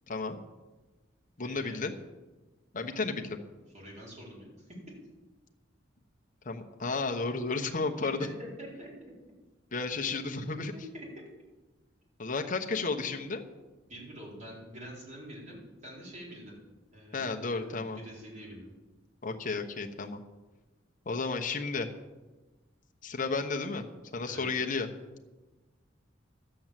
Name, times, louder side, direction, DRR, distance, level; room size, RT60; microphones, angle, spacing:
voice 1, 0.1-0.4 1.4-1.9 2.7-3.4 6.4-8.3 9.7-10.7 12.2-13.4 17.1-18.0 19.2-20.2 21.1-21.9 23.0-23.8 24.1-24.9, left 4 dB, 45° left, 2 dB, 1.0 m, -32 dB
voice 2, 1.4-1.9 3.7-4.8 8.0-9.1 10.7-11.3 13.9-16.5 16.9-18.7 24.2-24.6, equal, 40° right, -4 dB, 4.5 m, -46 dB
12.5 x 7.8 x 7.5 m, 1.2 s
head